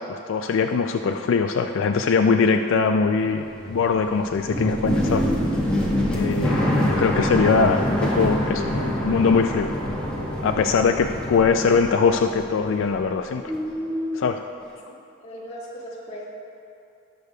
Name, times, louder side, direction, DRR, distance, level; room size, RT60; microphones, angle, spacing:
voice 1, 0.1-5.3 6.1-8.7 9.0-9.7 10.4-13.4 14.1-14.4, left 5 dB, 80° left, 6 dB, 0.4 m, -21 dB
sound 1, 3.0-13.2 13.4-14.3, left 1 dB, 5° left, 1.4 m, -26 dB
voice 2, 15.2-16.2, equal, 35° left, -6 dB, 1.9 m, -37 dB
19.0 x 6.5 x 2.3 m, 2.7 s
head